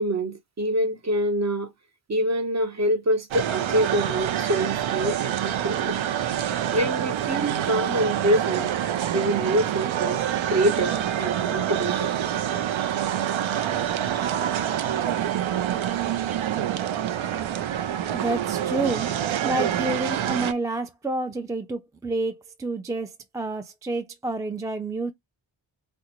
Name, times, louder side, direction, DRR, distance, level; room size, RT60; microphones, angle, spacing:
voice 1, 0.0-1.7 2.1-6.0 6.7-8.7 9.1-10.2 10.5-12.1, right 1 dB, 35° right, 0.8 m, -25 dB
sound 1, 3.3-20.5, right 10 dB, 85° right, 0.6 m, -26 dB
voice 2, 18.1-19.1 19.4-25.1, right 2 dB, 10° right, 0.3 m, -29 dB
3.7 x 2.2 x 2.9 m
wide cardioid pair, 130°, 46 cm